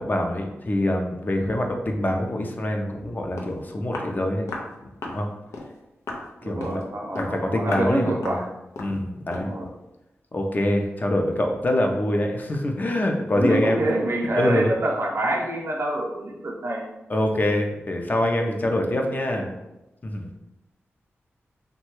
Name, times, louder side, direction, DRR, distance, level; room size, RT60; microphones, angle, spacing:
voice 1, 0.0-4.5 4.8-5.3 6.4-6.8 7.2-8.4 8.8-9.7 10.3-13.8 14.4-14.7 17.1-19.5 20.0-20.3, left 1 dB, 40° left, 2 dB, 0.5 m, -25 dB
Walk footsteps, 3.0-3.1 3.4-3.6 3.9-4.1 4.5-4.7 5.0-5.2 5.5-5.7 6.1-6.3 6.6-6.8 7.2-7.4 7.7-7.9 8.2-8.4 8.8-9.0 9.3-9.5, left 2 dB, 90° left, 0.4 m, -34 dB
voice 2, 6.4-8.5 9.3-9.7 13.3-16.9, right 1 dB, 55° right, -1 dB, 0.6 m, -26 dB
3.0 x 2.2 x 3.0 m, 0.95 s
cardioid pair, 60°, 5 cm